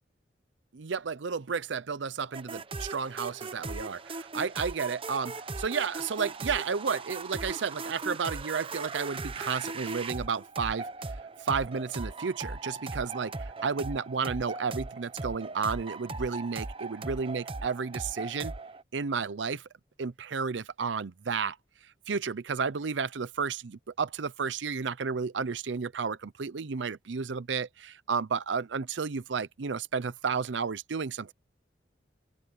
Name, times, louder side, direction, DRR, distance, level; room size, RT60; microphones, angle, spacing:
voice 1, 0.7-10.9 11.4-18.5 18.9-19.6 20.0-21.6 22.1-31.3, right 5 dB, 90° right, 0.6 m, -32 dB
sound 1, 2.3-18.8, right 3 dB, 30° right, 0.9 m, -39 dB
open air
head